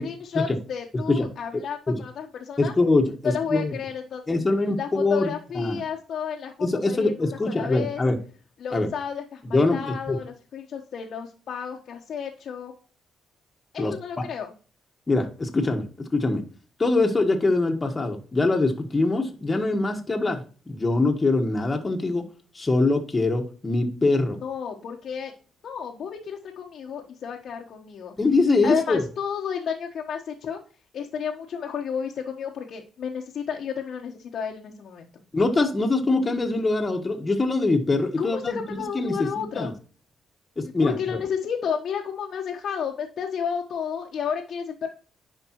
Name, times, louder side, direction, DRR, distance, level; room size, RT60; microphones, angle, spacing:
voice 1, 0.0-2.7 3.2-4.4 4.8-8.0 8.6-12.7 13.7-14.5 24.4-25.3 25.6-28.1 28.6-30.6 30.9-35.1 38.2-39.7 40.6-44.9, left 7 dB, 65° left, -1 dB, 1.1 m, -32 dB
voice 2, 2.6-3.7 4.3-5.8 6.6-8.2 8.7-8.9 9.4-10.2 13.8-13.9 15.1-16.4 16.8-20.4 20.7-22.2 22.5-24.4 28.2-29.0 35.3-38.6 38.9-39.7 40.6-41.0, left 2 dB, 25° left, 3 dB, 1.5 m, -23 dB
9.9 x 5.1 x 3.1 m, 0.38 s
cardioid pair, 90°, 0 cm